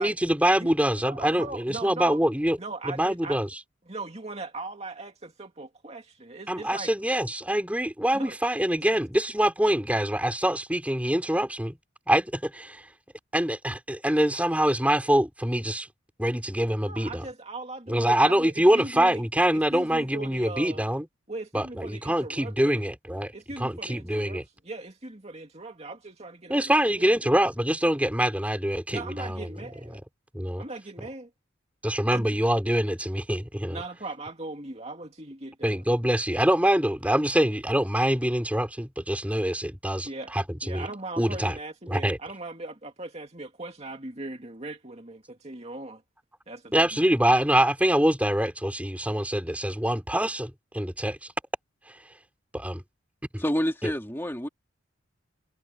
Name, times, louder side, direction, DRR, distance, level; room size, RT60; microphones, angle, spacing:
voice 1, 0.0-2.6 2.9-3.5 6.5-11.8 12.1-12.9 13.3-15.9 16.2-17.2 17.9-21.1 21.5-24.4 26.5-29.5 30.3-30.6 31.8-33.8 35.6-40.9 41.2-41.6 41.9-42.2 46.7-51.3 51.9-52.0 52.5-52.8 53.3-53.4 53.8-53.9, right 1 dB, 5° right, 4.7 m, -25 dB
voice 2, 1.0-2.2 2.6-3.4 3.9-6.9 8.1-8.4 16.9-19.2 19.5-20.8 21.3-22.8 23.3-27.1 28.9-30.0 30.6-31.3 32.1-32.3 33.7-35.8 40.0-40.4 40.6-46.0 46.5-46.9, right 2 dB, 30° right, 2.4 m, -39 dB
voice 3, 53.4-54.5, equal, 10° left, 2.3 m, -28 dB
head